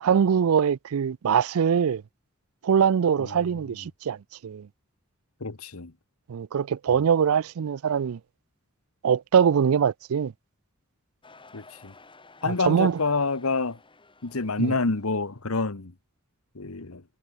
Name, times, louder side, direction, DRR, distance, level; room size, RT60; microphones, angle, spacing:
voice 1, 0.0-2.0 2.6-4.2 4.4-4.7 6.3-8.2 9.0-10.3 12.5-13.0 14.6-14.7, right 7 dB, 75° right, 0.4 m, -23 dB
voice 2, 3.2-3.6 5.4-5.9 6.9-7.0 11.5-11.9 12.4-13.8 14.2-15.9 16.5-17.0, left 3 dB, 75° left, 1.4 m, -28 dB
sound 1, 11.2-15.3, left 3 dB, 25° left, 6.3 m, -54 dB
head